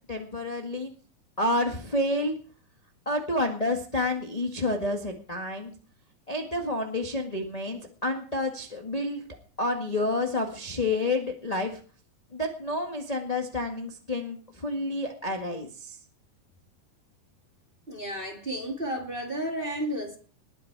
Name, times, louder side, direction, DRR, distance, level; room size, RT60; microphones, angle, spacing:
voice 1, 0.1-0.9 1.4-2.3 3.0-5.7 6.3-9.2 9.6-11.8 12.3-16.0, left 2 dB, 20° left, 1.0 m, -29 dB
voice 2, 17.9-20.2, right 1 dB, 20° right, 1.9 m, -32 dB
20.5 x 9.4 x 4.8 m
omnidirectional pair, 3.8 m